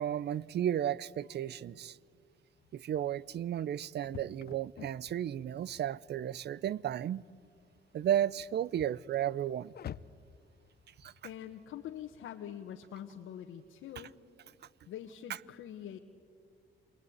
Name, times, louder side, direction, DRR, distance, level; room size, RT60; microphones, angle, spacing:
voice 1, 0.0-2.0 2.7-7.2 7.9-9.7 11.0-11.1, right 10 dB, 55° right, 0.6 m, -33 dB
sound 1, 2.6-12.2, left 10 dB, 55° left, 0.7 m, -52 dB
voice 2, 11.2-14.1 14.9-16.0, left 10 dB, 80° left, 1.4 m, -44 dB
28.0 x 21.0 x 9.5 m
cardioid pair, 90°, 20 cm